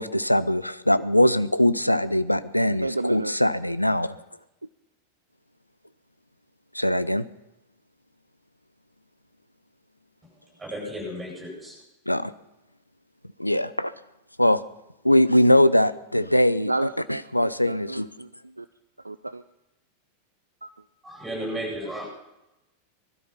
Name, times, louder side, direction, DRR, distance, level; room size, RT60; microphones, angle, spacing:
voice 1, 0.0-4.1 6.7-7.2 12.1-12.3 13.4-13.9 14.4-14.6 15.0-16.7 17.3-18.1, left 1 dB, 90° left, 15 dB, 0.6 m, -21 dB
voice 2, 2.8-3.4 16.6-18.7 19.0-19.4 20.6-20.7, right 2 dB, 85° right, 12 dB, 0.5 m, -32 dB
voice 3, 10.6-11.8 21.0-22.1, equal, 10° right, -1 dB, 8.0 m, -33 dB
20.0 x 12.5 x 5.7 m, 0.94 s
figure-of-eight pair, 90°, 0 cm